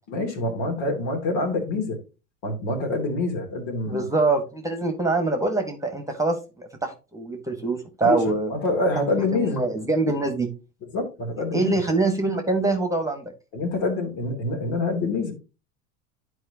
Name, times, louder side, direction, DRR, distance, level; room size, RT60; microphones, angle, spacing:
voice 1, 0.1-2.0 2.4-4.0 8.0-8.2 8.5-9.6 10.9-11.8 13.5-15.3, left 2 dB, 60° left, 2.8 m, -26 dB
voice 2, 3.9-8.5 9.2-10.5 11.5-13.3, right 3 dB, 5° right, 1.6 m, -24 dB
11.5 x 4.8 x 2.9 m
hypercardioid pair, 80°, 44 cm